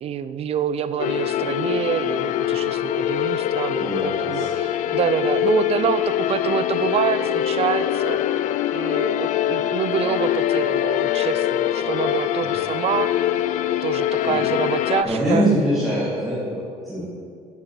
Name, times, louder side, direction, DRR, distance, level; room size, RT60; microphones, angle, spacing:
voice 1, 0.0-8.4 8.7-13.1 13.8-15.5, right 8 dB, 40° right, 13 dB, 0.5 m, -26 dB
sound 1, 1.0-15.0, left 12 dB, 55° left, 0.5 m, -23 dB
voice 2, 3.8-4.5 14.2-14.4 15.0-17.1, equal, ahead, -9 dB, 2.5 m, -23 dB
10.5 x 8.4 x 5.6 m, 2.3 s
cardioid pair, 135°, 15 cm